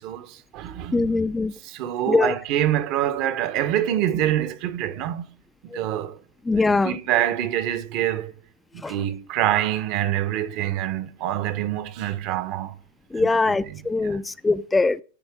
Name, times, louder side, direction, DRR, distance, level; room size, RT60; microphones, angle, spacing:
voice 1, 0.0-1.1 1.6-5.2 5.7-6.2 6.6-8.3 8.7-12.8 13.2-13.3 14.0-14.2, right 12 dB, 55° right, 1.2 m, -26 dB
voice 2, 0.9-1.5 2.1-2.3 5.7-5.8 6.5-7.0 8.8-9.0 13.1-15.0, left 3 dB, 10° left, 0.4 m, -22 dB
10.5 x 9.3 x 3.7 m
hypercardioid pair, 105°, 0 cm